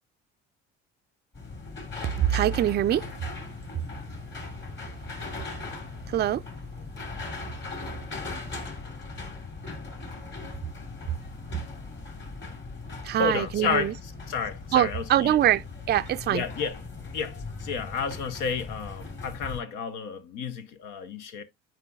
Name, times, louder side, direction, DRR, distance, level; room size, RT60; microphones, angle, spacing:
sound 1, 1.3-19.6, left 3 dB, 35° left, 2.5 m, -39 dB
voice 1, 2.2-3.0 6.1-6.4 13.0-13.9 14.7-16.4, right 12 dB, 35° right, 0.4 m, -23 dB
voice 2, 13.2-14.0 14.3-15.4 16.3-16.8 17.1-21.4, left 6 dB, 75° left, 0.8 m, -31 dB
9.1 x 4.9 x 2.3 m
supercardioid pair, 70°, 31 cm